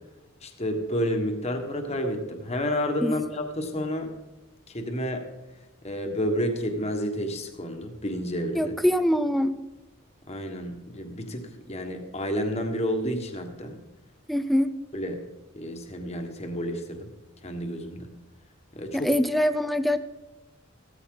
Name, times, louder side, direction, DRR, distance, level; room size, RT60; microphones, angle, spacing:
voice 1, 0.4-4.1 4.7-5.3 5.8-8.7 10.3-13.8 14.9-15.2 15.5-17.1 17.4-18.1 18.7-19.1, equal, 30° left, 4 dB, 1.6 m, -30 dB
voice 2, 8.5-9.5 14.3-14.7 18.9-20.0, equal, ahead, 11 dB, 0.6 m, -23 dB
15.0 x 13.5 x 3.9 m, 1.0 s
head